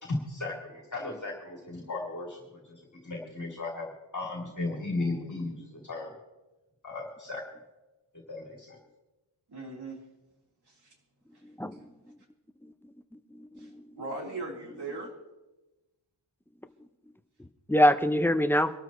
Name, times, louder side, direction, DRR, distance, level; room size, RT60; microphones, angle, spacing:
voice 1, 0.0-6.1 6.8-7.4 8.3-8.8, left 2 dB, 35° left, -1 dB, 2.8 m, -36 dB
voice 2, 9.5-10.0 10.7-10.9 11.3-11.4 13.6-13.7 14.0-15.1, right 3 dB, 55° right, -1 dB, 3.5 m, -39 dB
voice 3, 11.4-12.1 12.8-12.9 13.3-13.9 17.4-18.7, equal, 5° left, 9 dB, 0.5 m, -26 dB
24.5 x 13.0 x 3.0 m, 1.1 s
wide cardioid pair, 150°, 49 cm